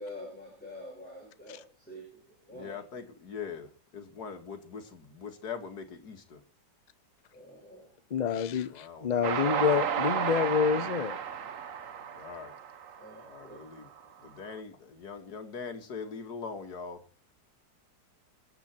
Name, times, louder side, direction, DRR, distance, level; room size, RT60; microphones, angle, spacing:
voice 1, 0.0-2.8 7.3-7.9 13.0-13.6, left 1 dB, 5° left, 6.0 m, -46 dB
voice 2, 2.5-6.4 8.7-9.3 12.1-12.5 13.3-13.9 14.2-17.0, left 5 dB, 55° left, 2.3 m, -42 dB
voice 3, 8.1-8.7 9.0-11.2, left 7 dB, 90° left, 0.3 m, -27 dB
Train, 9.2-13.6, right 7 dB, 50° right, 1.2 m, -32 dB
26.5 x 9.2 x 4.4 m
omnidirectional pair, 2.0 m